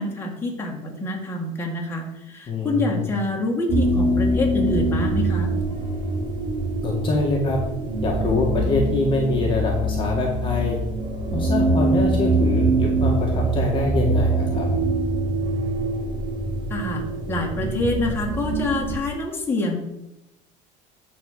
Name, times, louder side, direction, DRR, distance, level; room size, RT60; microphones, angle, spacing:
voice 1, 0.0-5.5 16.7-19.8, left 2 dB, 15° left, -1 dB, 2.0 m, -26 dB
voice 2, 2.5-3.1 6.8-7.6 8.0-10.8 11.3-14.7, left 2 dB, 30° left, -1 dB, 1.7 m, -24 dB
sound 1, 3.7-19.0, right 2 dB, 25° right, 1.8 m, -24 dB
10.5 x 4.3 x 6.7 m, 0.89 s
cardioid pair, 150°, 17 cm